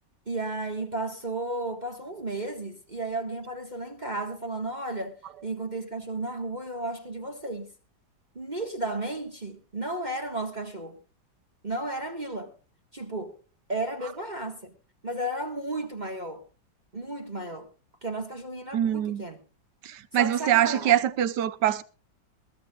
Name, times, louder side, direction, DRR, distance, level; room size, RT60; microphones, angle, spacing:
voice 1, 0.3-5.2 5.4-7.7 8.3-11.0 11.6-12.5 12.9-13.4 13.7-14.7 15.0-16.4 16.9-17.7 18.0-19.4 20.1-21.0, right 2 dB, 25° right, 1.6 m, -33 dB
voice 2, 18.7-19.2 19.8-21.8, right 11 dB, 65° right, 1.4 m, -24 dB
21.5 x 15.5 x 2.4 m
omnidirectional pair, 2.1 m